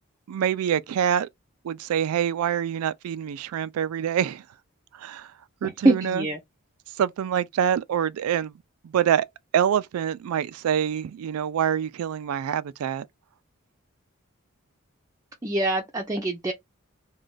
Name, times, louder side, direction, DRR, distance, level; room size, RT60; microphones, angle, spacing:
voice 1, 0.3-1.3 1.6-4.4 5.0-5.3 5.6-6.2 7.0-8.5 8.8-9.3 9.5-13.1, right 9 dB, 90° right, 0.3 m, -25 dB
voice 2, 5.6-6.4 15.4-16.5, right 2 dB, 15° right, 0.4 m, -24 dB
2.4 x 2.2 x 3.9 m
head